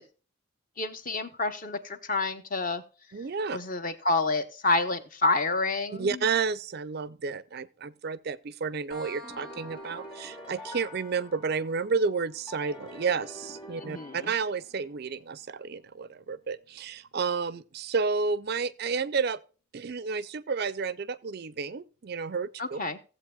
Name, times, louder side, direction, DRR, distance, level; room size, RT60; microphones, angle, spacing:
voice 1, 0.8-2.8 3.5-6.3 13.8-14.3 22.6-23.0, left 3 dB, 40° left, 0.9 m, -29 dB
voice 2, 3.1-3.6 6.0-19.4 19.7-22.8, right 5 dB, 45° right, 0.4 m, -31 dB
sound 1, 8.9-16.3, equal, 75° left, 2.0 m, -52 dB
sound 2, 9.2-11.8 12.5-14.9, equal, 25° left, 1.5 m, -46 dB
16.5 x 7.8 x 2.4 m
head